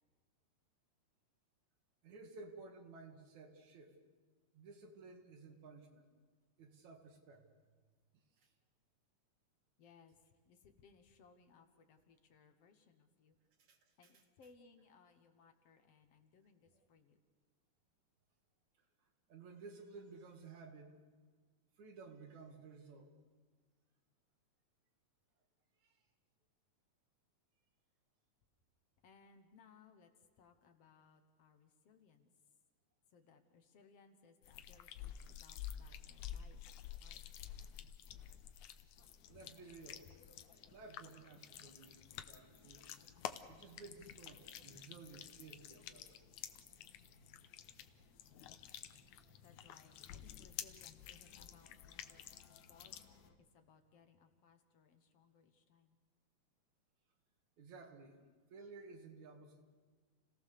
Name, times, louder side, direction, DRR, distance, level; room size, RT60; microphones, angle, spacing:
voice 1, 2.0-4.0 4.5-6.1 6.6-7.5 8.1-8.5 13.6-13.8 19.3-21.0 21.8-23.1 25.8-26.0 39.3-40.1 40.7-43.0 43.5-46.2 57.6-58.2 58.5-59.6, right 4 dB, 75° right, 4 dB, 3.4 m, -55 dB
voice 2, 9.8-13.4 14.0-17.2 29.0-32.3 33.1-36.6 37.0-37.5 48.9-49.0 49.4-52.3 52.7-56.0, left 5 dB, 60° left, 7 dB, 2.2 m, -66 dB
sound 1, 34.4-53.3, left 10 dB, 85° left, 2.2 m, -51 dB
sound 2, 38.9-53.4, left 4 dB, 35° left, 1.8 m, -66 dB
29.0 x 18.0 x 6.8 m, 1.5 s
omnidirectional pair, 3.3 m